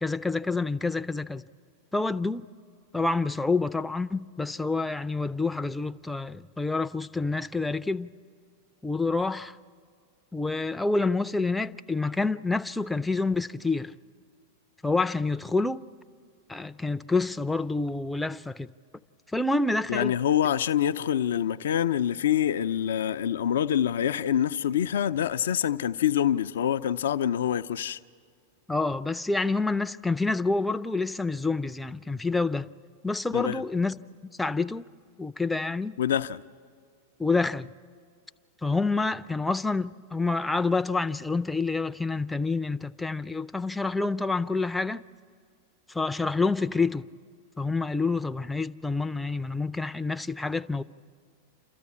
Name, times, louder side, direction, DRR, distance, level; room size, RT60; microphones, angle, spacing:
voice 1, 0.0-1.4 1.9-2.5 2.9-8.1 8.8-9.6 10.3-13.9 14.8-15.8 16.5-18.7 19.3-20.1 28.7-32.7 33.0-34.0 34.4-34.9 35.2-36.0 37.2-37.7 38.6-45.0 45.9-47.1 47.6-50.8, left 3 dB, 5° left, 0.5 m, -28 dB
voice 2, 19.9-28.0 33.3-33.6 36.0-36.4, left 10 dB, 75° left, 0.5 m, -26 dB
28.5 x 13.5 x 8.5 m
hypercardioid pair, 105°, 0 cm